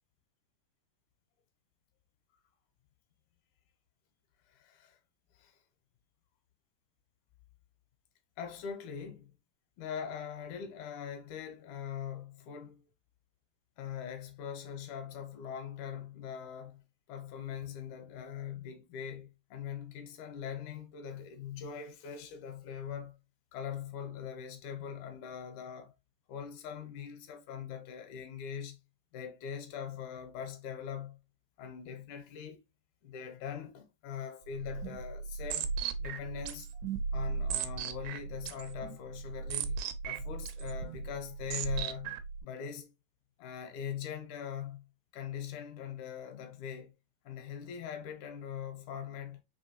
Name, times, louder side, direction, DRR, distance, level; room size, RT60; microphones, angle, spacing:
voice 1, 4.5-5.0 5.3-5.6 8.4-9.3 9.8-12.9 13.8-16.8 17.1-23.2 23.5-25.9 26.3-28.8 29.1-31.2 31.6-32.6 33.0-35.7 36.0-36.7 37.1-42.9 43.4-44.9 45.1-46.9 47.2-49.4, left 8 dB, 80° left, 2.3 m, -42 dB
sound 1, 34.5-42.4, right 5 dB, 80° right, 2.0 m, -37 dB
5.3 x 3.1 x 2.8 m
omnidirectional pair, 3.6 m